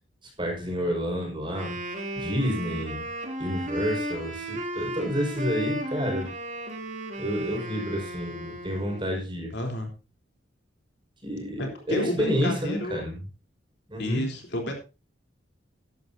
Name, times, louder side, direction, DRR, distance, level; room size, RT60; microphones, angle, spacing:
voice 1, 0.2-1.8 2.2-3.1 3.4-6.3 7.2-9.5 11.2-13.2 13.9-14.3, equal, 25° right, 1 dB, 5.3 m, -29 dB
Wind instrument woodwind instrument, 1.5-9.2, right 1 dB, 40° right, 2.9 m, -34 dB
voice 2, 9.5-9.9 11.6-13.0 14.0-14.8, left 1 dB, 60° left, 3 dB, 3.5 m, -30 dB
12.5 x 12.0 x 2.7 m, 0.30 s
head